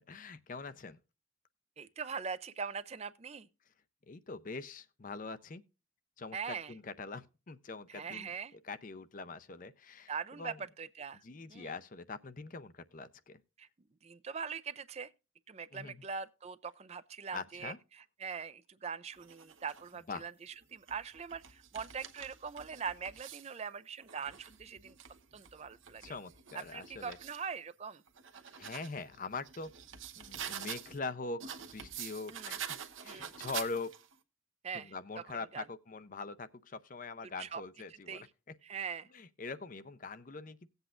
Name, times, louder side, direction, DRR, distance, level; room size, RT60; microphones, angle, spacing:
voice 1, 0.1-1.0 4.1-5.6 6.2-10.6 11.2-13.4 15.7-16.0 17.3-17.8 20.1-20.3 26.0-27.2 28.5-29.7 30.2-33.9 34.7-38.3 39.1-40.7, left 4 dB, 40° left, 0.5 m, -43 dB
voice 2, 1.8-3.5 6.3-6.7 7.9-8.5 10.1-11.2 11.5-11.7 13.6-13.7 14.0-15.1 15.5-24.9 25.3-26.1 26.7-28.0 30.5-30.7 32.3-32.5 33.0-33.3 34.6-34.9 35.5-35.6 37.4-37.6 38.1-38.3 38.6-39.1, right 6 dB, 30° right, 0.4 m, -42 dB
sound 1, 19.1-19.9 20.6-23.6 24.0-27.5 27.9-31.0 31.4-34.1, right 8 dB, 75° right, 1.0 m, -46 dB
17.5 x 8.0 x 2.4 m
head